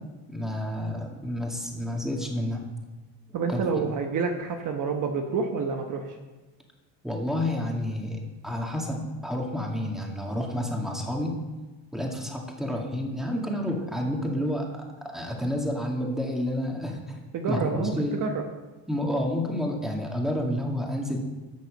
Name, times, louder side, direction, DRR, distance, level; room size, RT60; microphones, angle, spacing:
voice 1, 0.3-2.6 3.3-3.6 7.0-11.3 11.9-14.8 15.1-17.2 17.5-18.1 18.9-21.2, left 1 dB, ahead, -1 dB, 2.2 m, -30 dB
voice 2, 3.3-6.1 17.3-18.4, right 5 dB, 40° right, 3 dB, 1.2 m, -28 dB
12.0 x 6.4 x 7.8 m, 1.2 s
cardioid pair, 125°, 45 cm